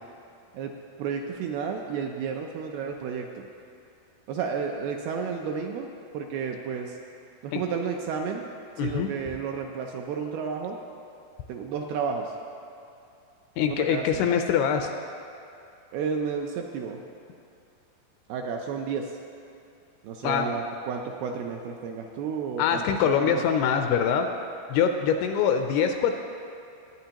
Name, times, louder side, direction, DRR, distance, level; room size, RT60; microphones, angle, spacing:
voice 1, 0.5-3.5 4.3-5.9 6.1-7.0 7.4-8.5 8.8-10.8 11.5-12.4 13.6-14.3 15.9-17.0 18.3-19.2 20.0-23.4, right 6 dB, 80° right, 2 dB, 2.3 m, -32 dB
voice 2, 8.8-9.1 13.6-14.9 20.2-20.5 22.6-24.3 24.7-26.2, left 7 dB, 80° left, 5 dB, 2.4 m, -24 dB
20.5 x 9.1 x 2.9 m, 2.6 s
omnidirectional pair, 4.9 m